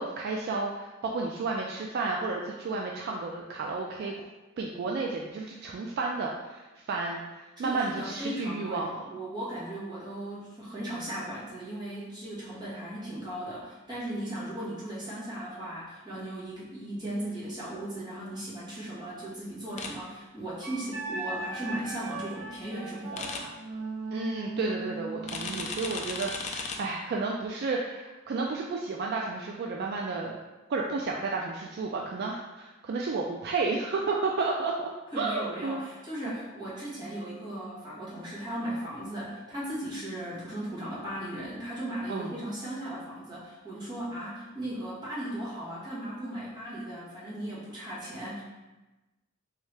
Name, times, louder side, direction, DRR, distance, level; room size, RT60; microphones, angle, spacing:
voice 1, 0.0-4.2 4.6-9.0 24.1-30.4 30.7-34.9 35.2-35.9 36.3-36.4 42.1-42.3, right 3 dB, 50° right, 0 dB, 0.3 m, -32 dB
voice 2, 7.6-23.5 35.1-48.4, right 1 dB, 20° right, -9 dB, 1.4 m, -37 dB
sound 1, 19.8-19.9 23.2-23.4 25.3-26.8, left 4 dB, 35° left, 0.4 m, -35 dB
Wind instrument woodwind instrument, 20.6-26.0, right 3 dB, 85° right, 0.8 m, -38 dB
3.6 x 3.2 x 3.2 m, 1.1 s
head